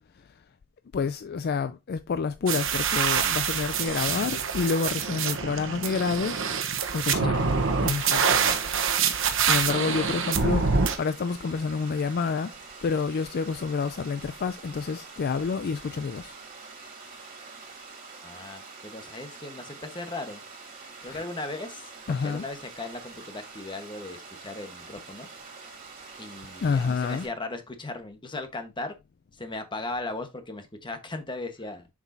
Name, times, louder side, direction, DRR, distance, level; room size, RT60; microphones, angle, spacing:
voice 1, 0.9-6.4 6.9-7.5 7.8-8.6 9.4-10.7 11.0-12.5 12.8-16.3 21.1-21.2 22.1-22.4 26.6-27.3, left 5 dB, 45° left, 0.3 m, -28 dB
sound 1, 2.5-11.0, right 6 dB, 60° right, 1.0 m, -26 dB
voice 2, 7.0-7.7 8.4-9.0 18.2-20.4 21.0-25.3 26.2-28.9 29.3-31.9, left 2 dB, 20° left, 1.2 m, -38 dB
Water, 7.3-27.3, right 4 dB, 40° right, 2.8 m, -45 dB
7.1 x 6.1 x 2.6 m
head